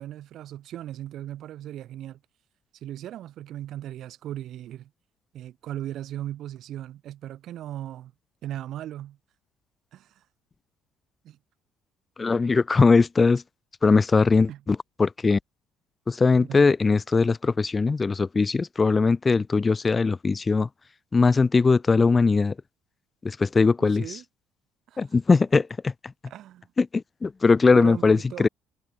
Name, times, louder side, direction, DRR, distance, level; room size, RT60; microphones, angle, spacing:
voice 1, 0.0-2.2 2.7-4.9 5.3-8.1 8.4-9.2 9.9-10.2 11.2-11.4 14.5-14.6 16.5-16.7 23.8-24.2 24.9-25.0 26.3-26.7 27.7-28.5, right 12 dB, 60° right, 3.7 m, -37 dB
voice 2, 12.2-13.4 13.8-15.4 16.1-20.7 21.1-22.5 23.2-24.2 25.0-26.1 26.8-28.5, left 4 dB, 25° left, 1.1 m, -20 dB
cardioid pair, 115°, 0 cm